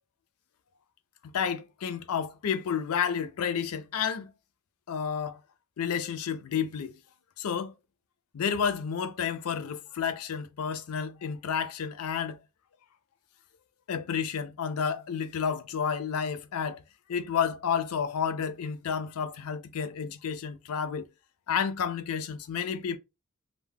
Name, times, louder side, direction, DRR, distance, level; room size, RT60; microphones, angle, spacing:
voice 1, 1.2-4.3 4.9-5.4 5.8-7.0 7.4-7.7 8.3-12.4 13.9-16.8 17.1-21.1 21.5-23.0, left 7 dB, 80° left, 0.4 m, -31 dB
2.2 x 2.0 x 3.4 m
head